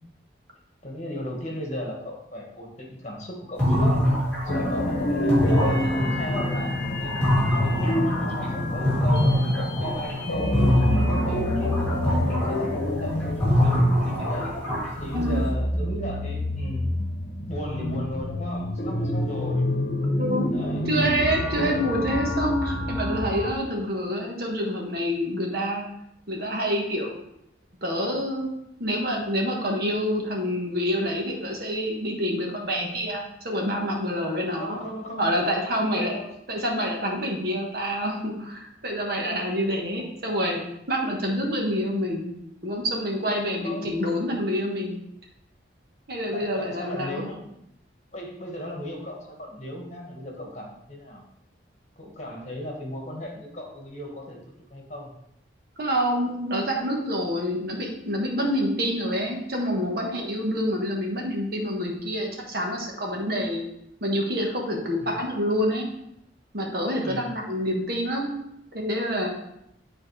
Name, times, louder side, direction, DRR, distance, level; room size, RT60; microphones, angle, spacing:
voice 1, 0.8-4.0 4.4-10.6 11.2-13.7 14.2-14.5 15.0-16.9 17.5-19.7 20.5-20.8 34.6-35.5 35.8-36.3 40.0-40.1 43.6-44.1 46.3-47.5 48.1-51.2 52.0-55.1 65.0-65.2 67.0-67.3, left 1 dB, 35° left, -1 dB, 1.5 m, -36 dB
sound 1, 3.6-10.3 10.5-15.5, equal, 5° left, 2.6 m, -24 dB
sound 2, 4.5-23.5, left 1 dB, 60° left, 1.0 m, -27 dB
voice 2, 15.1-15.5 17.8-18.0 20.1-20.5 20.8-25.9 26.3-27.2 27.8-28.5 28.8-34.8 35.2-36.2 36.5-40.6 40.9-42.3 42.6-45.0 46.1-47.3 55.8-63.6 64.0-65.9 66.5-68.3 68.7-69.3, equal, 55° right, 0 dB, 1.4 m, -27 dB
10.0 x 4.2 x 3.3 m, 0.78 s
head